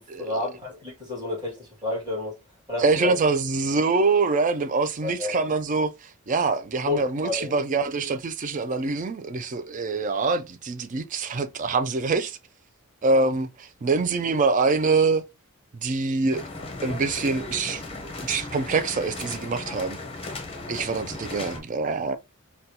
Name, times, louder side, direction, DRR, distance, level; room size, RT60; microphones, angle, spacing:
voice 1, 0.0-2.3 2.7-3.1 5.0-5.4 6.9-7.5, left 2 dB, 20° right, 1.9 m, -30 dB
voice 2, 2.8-12.4 13.0-15.2 15.7-16.4 16.8-20.0 20.7-22.2, right 4 dB, 35° right, 0.4 m, -25 dB
sound 1, 16.3-21.6, left 2 dB, 25° left, 0.7 m, -36 dB
3.9 x 2.2 x 2.7 m
head